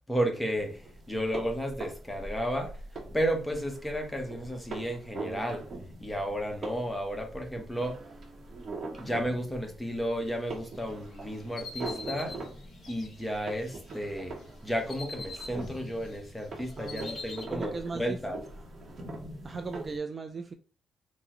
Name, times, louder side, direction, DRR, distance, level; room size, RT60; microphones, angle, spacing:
voice 1, 0.1-0.8 1.1-2.7 3.1-5.6 6.0-8.0 9.0-12.3 12.9-14.3 14.6-18.4, equal, 5° left, 0.8 m, -32 dB
sound 1, 0.5-20.0, right 2 dB, 50° right, 0.8 m, -43 dB
sound 2, 10.7-14.0 14.4-16.2 16.4-17.5, left 4 dB, 55° left, 0.7 m, -44 dB
voice 2, 16.6-17.2 17.5-18.2 19.4-20.5, right 4 dB, 30° right, 0.3 m, -37 dB
3.5 x 2.0 x 2.9 m
cardioid pair, 90°, 0 cm